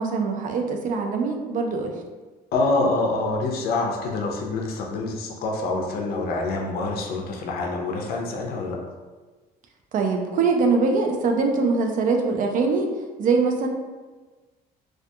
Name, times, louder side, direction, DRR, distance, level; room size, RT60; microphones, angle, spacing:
voice 1, 0.0-1.9 9.9-12.9 13.2-13.7, right 4 dB, 50° right, 3 dB, 0.4 m, -22 dB
voice 2, 2.5-8.8, left 2 dB, 65° left, 0 dB, 0.4 m, -26 dB
2.3 x 2.2 x 2.6 m, 1.3 s
cardioid pair, 110°, 17 cm